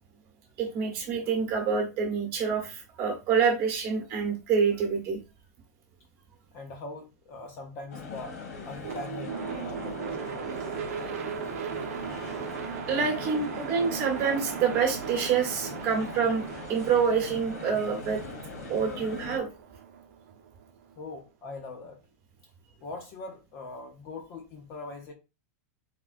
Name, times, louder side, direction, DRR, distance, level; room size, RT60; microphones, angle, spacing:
voice 1, 0.6-5.2 12.6-18.2 18.7-19.5, right 6 dB, 25° right, 1.0 m, -27 dB
voice 2, 6.5-8.4 8.6-10.5 21.0-22.0 22.8-25.1, left 3 dB, 25° left, 0.6 m, -42 dB
sound 1, 7.9-19.4, left 4 dB, 70° left, 1.6 m, -41 dB
sound 2, 8.8-20.9, right 7 dB, 55° right, 0.7 m, -38 dB
3.6 x 3.4 x 2.5 m
supercardioid pair, 175°, 9 cm